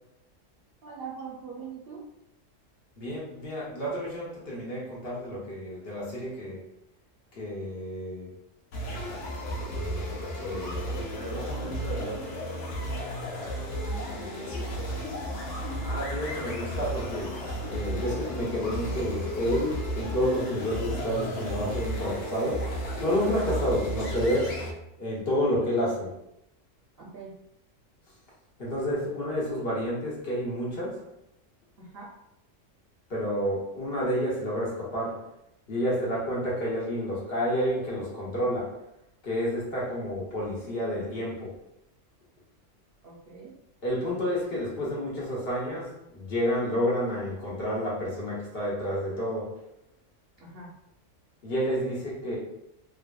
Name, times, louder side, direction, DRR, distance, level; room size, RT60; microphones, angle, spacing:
voice 1, 0.8-2.0 13.8-14.7 27.0-27.3 31.8-32.1 43.0-43.5 50.4-50.7, right 5 dB, 60° right, -4 dB, 0.7 m, -42 dB
voice 2, 3.0-6.6 7.4-8.3 10.3-12.3 15.8-22.7 23.0-24.6 25.0-26.1 28.6-31.0 33.1-35.2 35.7-38.8 39.2-41.5 43.8-49.6 51.4-52.4, equal, 50° left, -6 dB, 1.1 m, -30 dB
sound 1, 8.7-24.7, equal, 75° left, 1.0 m, -33 dB
3.2 x 2.5 x 2.2 m, 0.82 s
omnidirectional pair, 1.3 m